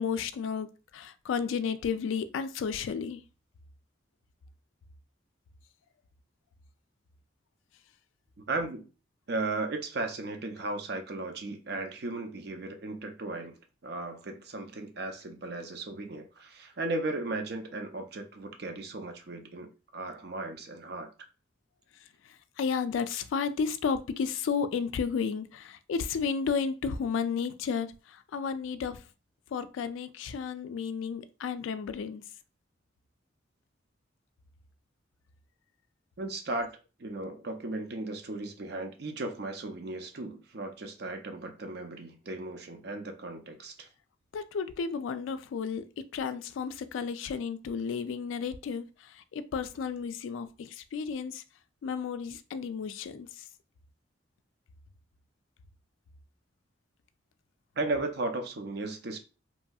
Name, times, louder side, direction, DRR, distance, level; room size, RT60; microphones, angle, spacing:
voice 1, 0.0-3.2 22.6-29.0 29.5-32.2 44.3-48.9 49.3-51.4 51.8-53.3, left 6 dB, 85° left, 0.3 m, -32 dB
voice 2, 8.5-8.9 9.3-13.5 13.8-21.1 36.2-36.7 37.0-43.9 57.8-59.2, right 2 dB, 55° right, 0.5 m, -36 dB
2.9 x 2.6 x 2.3 m
head